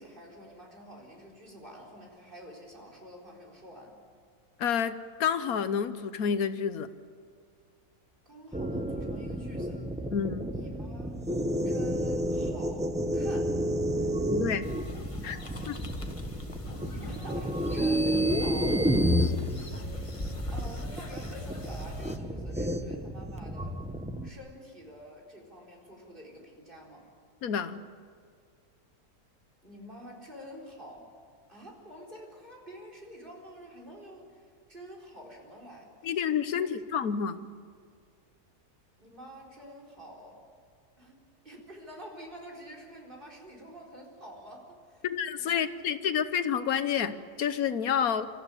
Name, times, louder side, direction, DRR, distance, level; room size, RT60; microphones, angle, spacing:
voice 1, 0.0-4.0 8.3-9.8 10.4-11.1 11.6-13.6 13.9-14.3 16.8-19.0 20.5-23.8 24.2-27.1 29.6-31.1 31.5-36.2 36.6-36.8 39.0-40.4 41.0-41.2 41.4-45.1 45.3-46.1, equal, 30° right, 0 dB, 4.5 m, -48 dB
voice 2, 4.6-6.9 10.1-10.5 14.3-14.7 15.2-15.4 15.7-15.8 27.4-27.8 36.0-37.5 45.0-48.3, left 7 dB, 70° left, 12 dB, 1.3 m, -29 dB
sound 1, 8.5-24.3, equal, 5° right, 0.7 m, -31 dB
sound 2, 14.6-22.2, left 1 dB, 20° left, 1.4 m, -40 dB
26.5 x 14.5 x 9.8 m, 2.1 s
omnidirectional pair, 1.6 m